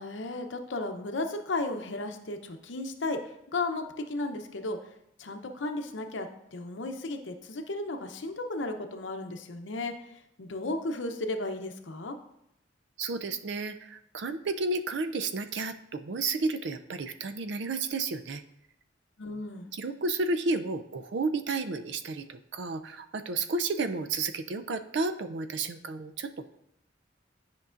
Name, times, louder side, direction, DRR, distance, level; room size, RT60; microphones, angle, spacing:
voice 1, 0.0-3.2 3.5-4.8 5.2-9.9 10.4-12.2 19.2-19.7, left 2 dB, 75° left, 6 dB, 0.7 m, -34 dB
voice 2, 13.0-18.4 19.7-26.5, right 3 dB, 65° right, 10 dB, 0.4 m, -32 dB
10.5 x 5.3 x 2.5 m, 0.79 s
head